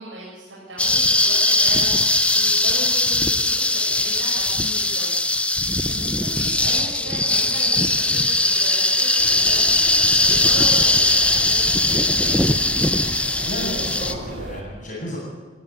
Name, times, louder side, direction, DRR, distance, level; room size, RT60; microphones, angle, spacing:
voice 1, 0.0-5.2 5.5-12.4, right 1 dB, 80° right, -8 dB, 6.9 m, -37 dB
sound 1, 0.8-14.1, left 2 dB, 5° left, 0.8 m, -19 dB
sound 2, 9.2-14.6, right 1 dB, 60° right, 2.6 m, -36 dB
voice 2, 13.3-15.2, equal, 40° left, -7 dB, 7.0 m, -32 dB
19.5 x 13.5 x 9.8 m, 1.3 s
head